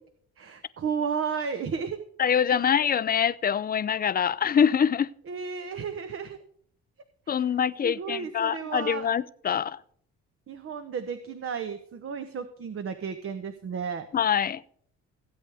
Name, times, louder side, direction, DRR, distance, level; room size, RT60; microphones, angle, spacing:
voice 1, 0.4-2.0 2.6-2.7 5.3-6.4 7.3-7.5 7.8-9.1 10.5-14.1, right 6 dB, 45° right, 9 dB, 0.9 m, -33 dB
voice 2, 2.2-5.1 7.3-9.8 14.1-14.6, left 8 dB, 30° left, 17 dB, 0.5 m, -24 dB
16.0 x 8.3 x 3.5 m, 0.62 s
cardioid pair, 90°, 30 cm